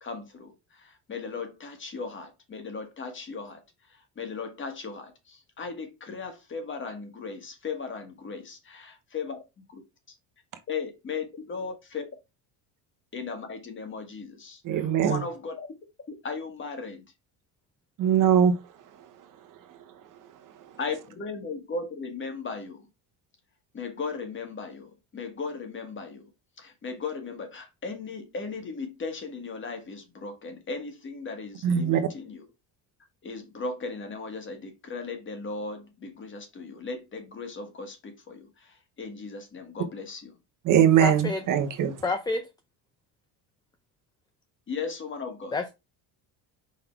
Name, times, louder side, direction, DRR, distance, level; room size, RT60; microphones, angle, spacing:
voice 1, 0.0-9.8 10.1-10.2 10.7-12.0 13.1-15.7 16.2-17.0 20.8-22.9 23.7-26.3 26.6-32.4 33.2-40.3 44.7-45.6, left 4 dB, 30° left, 1.6 m, -37 dB
voice 2, 14.6-15.2 18.0-18.5 31.6-32.0 40.7-42.0, right 9 dB, 50° right, 1.0 m, -21 dB
voice 3, 41.0-41.4 42.0-42.4 45.5-45.7, left 3 dB, 10° left, 0.6 m, -28 dB
5.3 x 4.0 x 4.5 m
cardioid pair, 150°, 41 cm